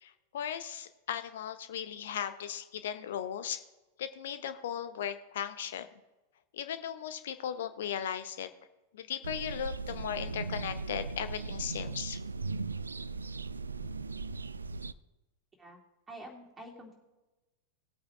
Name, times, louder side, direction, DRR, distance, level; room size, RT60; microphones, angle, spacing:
voice 1, 0.0-3.6 4.0-5.9 6.5-8.5 8.9-12.2, left 9 dB, 60° left, 11 dB, 0.6 m, -37 dB
sound 1, 9.2-14.9, right 4 dB, 75° right, 0.3 m, -38 dB
voice 2, 16.1-16.9, right 1 dB, 15° right, -1 dB, 2.4 m, -47 dB
18.5 x 8.6 x 2.3 m, 1.1 s
figure-of-eight pair, 90°, 0 cm